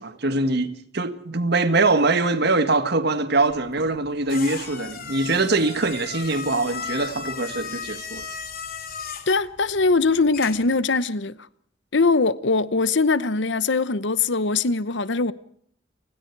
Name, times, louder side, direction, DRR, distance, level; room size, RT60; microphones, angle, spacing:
voice 1, 0.0-8.3, right 3 dB, 60° right, 1.7 m, -23 dB
sound 1, 3.5-10.8, left 6 dB, 55° left, 3.0 m, -36 dB
voice 2, 9.3-11.4 11.9-15.3, left 3 dB, 70° left, 0.9 m, -21 dB
29.5 x 20.5 x 4.7 m
head